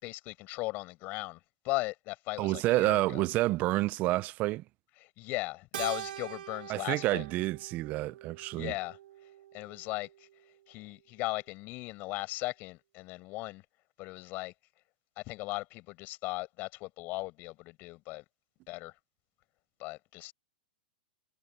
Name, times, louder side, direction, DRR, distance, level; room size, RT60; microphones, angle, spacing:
voice 1, 0.0-1.4 1.6-3.2 5.2-7.2 8.5-9.0 9.5-10.1 10.7-13.6 14.0-14.5 15.3-18.2 18.7-18.9 19.8-20.3, left 21 dB, 40° left, 5.3 m, -37 dB
voice 2, 2.4-4.6 6.7-8.7, right 18 dB, 35° right, 0.6 m, -29 dB
Keyboard (musical), 5.7-10.3, right 11 dB, 75° right, 1.7 m, -44 dB
hypercardioid pair, 140°, 5 cm